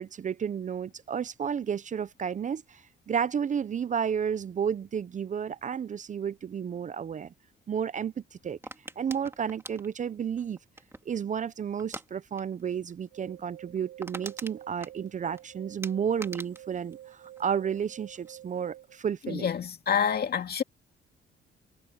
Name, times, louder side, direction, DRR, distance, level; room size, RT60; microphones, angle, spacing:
voice 1, 0.0-7.3 7.7-8.1 8.4-8.6 9.0-10.6 11.1-19.5, right 7 dB, 40° right, 0.6 m, -32 dB
sound 1, 8.6-11.2 11.8-12.1 12.4-12.6 12.9-13.0 13.4-13.5 13.7-15.4 15.8-17.9 18.1-18.6, right 2 dB, 10° right, 2.2 m, -43 dB
sound 2, 13.0-19.0, right 13 dB, 85° right, 8.0 m, -50 dB
voice 2, 19.2-20.6, left 7 dB, 50° left, 2.3 m, -27 dB
cardioid pair, 90°, 20 cm